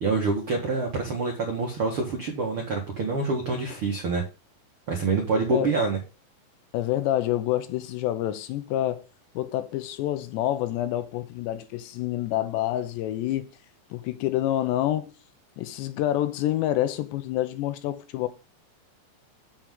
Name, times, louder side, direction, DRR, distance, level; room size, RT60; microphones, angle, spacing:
voice 1, 0.0-4.2 4.9-6.0, right 3 dB, 70° right, 1.2 m, -26 dB
voice 2, 6.7-9.1 9.4-13.5 13.9-15.1 15.6-18.3, left 13 dB, 85° left, 3.0 m, -27 dB
7.6 x 7.1 x 3.6 m
omnidirectional pair, 5.0 m